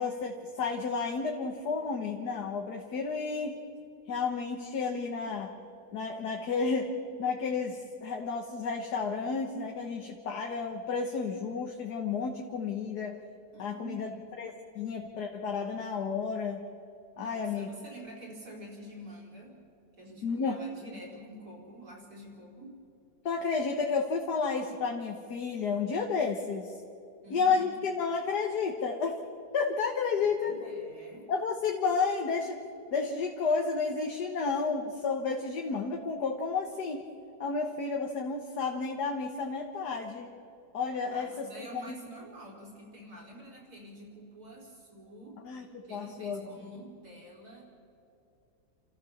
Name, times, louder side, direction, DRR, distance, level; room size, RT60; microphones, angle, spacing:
voice 1, 0.0-3.6 4.1-5.5 5.9-13.2 13.6-14.1 14.4-16.6 17.2-17.7 20.2-20.6 23.2-26.7 27.3-29.2 29.5-30.5 31.3-32.6 32.9-37.0 37.4-40.3 40.7-41.9 45.4-46.5, left 5 dB, 70° left, 2 dB, 1.9 m, -31 dB
voice 2, 13.5-14.2 17.2-19.6 20.0-22.8 27.2-27.8 30.3-31.3 41.1-45.4 45.8-47.7, right 1 dB, 65° right, -1 dB, 4.7 m, -47 dB
29.0 x 14.0 x 7.2 m, 2.6 s
omnidirectional pair, 1.8 m